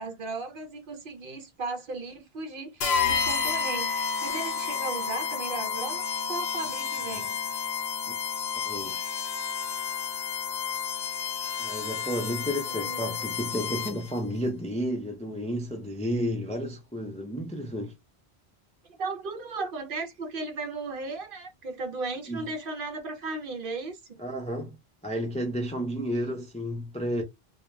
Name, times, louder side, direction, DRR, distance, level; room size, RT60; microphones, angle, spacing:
voice 1, 0.0-7.4 12.7-13.4 19.0-24.2, right 3 dB, 60° right, 0.7 m, -36 dB
sound 1, 2.8-14.2, left 6 dB, 50° left, 0.6 m, -31 dB
voice 2, 8.6-9.0 11.6-17.9 22.3-22.4 24.2-24.8 25.0-27.2, equal, 10° left, 0.3 m, -32 dB
2.2 x 2.2 x 3.0 m
omnidirectional pair, 1.1 m